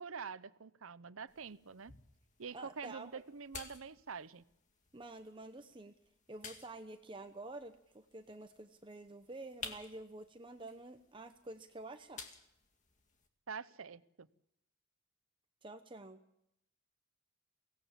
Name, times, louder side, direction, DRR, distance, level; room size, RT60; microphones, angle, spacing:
voice 1, 0.0-1.9 2.4-4.4 13.5-14.3, right 5 dB, 75° right, 16 dB, 0.8 m, -46 dB
sound 1, 1.3-13.3, left 4 dB, 35° left, 2.0 m, -54 dB
voice 2, 2.5-3.2 4.9-6.0 6.3-12.2 15.6-16.2, right 2 dB, 25° right, 8 dB, 0.9 m, -49 dB
23.5 x 17.5 x 7.3 m, 0.80 s
head